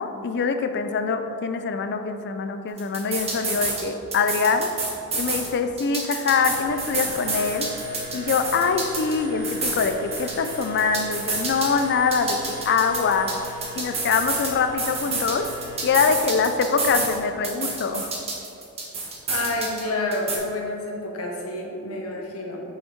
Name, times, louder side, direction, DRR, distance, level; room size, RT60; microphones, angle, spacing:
voice 1, 0.0-4.7 5.1-7.7 8.1-12.4 12.6-13.3 13.8-15.5 15.8-18.2, left 5 dB, 50° left, 8 dB, 0.4 m, -24 dB
sound 1, 2.8-3.8 4.1-5.5 5.8-9.2 9.4-11.8 12.1-14.5 14.8-17.2 17.4-19.8 20.1-20.4, right 3 dB, 30° right, 1.2 m, -28 dB
sound 2, 6.2-16.0, equal, 90° right, 1.2 m, -39 dB
voice 2, 19.3-22.6, left 2 dB, 70° left, -1 dB, 1.1 m, -29 dB
5.8 x 5.2 x 4.4 m, 2.9 s
head